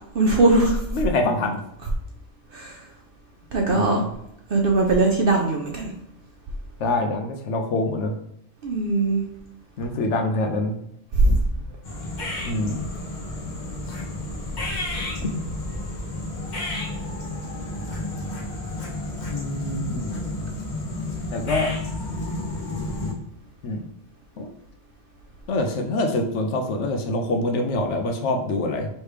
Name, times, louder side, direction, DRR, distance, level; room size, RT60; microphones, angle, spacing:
voice 1, 0.1-0.8 2.5-2.7 3.5-4.0 4.5-5.9 8.6-9.2, right 3 dB, 55° right, 0 dB, 0.8 m, -20 dB
voice 2, 0.9-1.6 3.7-4.1 6.8-8.1 9.8-10.8 11.2-11.4 12.5-12.9 15.2-15.3 19.3-20.2 21.3-21.7 23.6-23.9 24.4-24.5 25.5-28.9, left 2 dB, 75° left, 4 dB, 0.9 m, -25 dB
sound 1, 11.8-23.1, left 2 dB, 40° left, 1.0 m, -31 dB
3.3 x 3.2 x 4.7 m, 0.77 s
omnidirectional pair, 1.2 m